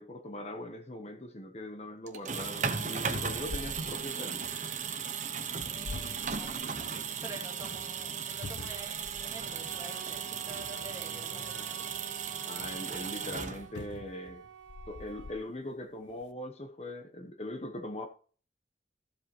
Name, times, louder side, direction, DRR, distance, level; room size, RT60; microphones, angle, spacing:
voice 1, 0.0-4.5 10.8-10.9 12.4-14.4 14.9-18.1, left 1 dB, 35° left, 6 dB, 1.0 m, -41 dB
sound 1, 2.1-14.0, right 6 dB, 40° right, 1.1 m, -36 dB
sound 2, 3.1-4.8 5.5-6.9 7.4-7.5 8.4-9.5 10.5-10.6 13.7-15.4 16.1-16.2, left 3 dB, 85° left, 0.6 m, -44 dB
voice 2, 5.7-6.6 7.2-11.9, right 2 dB, 15° right, 2 dB, 2.2 m, -48 dB
Wind instrument woodwind instrument, 9.4-15.5, right 7 dB, 90° right, 1.6 m, -49 dB
14.5 x 7.8 x 3.0 m, 0.41 s
head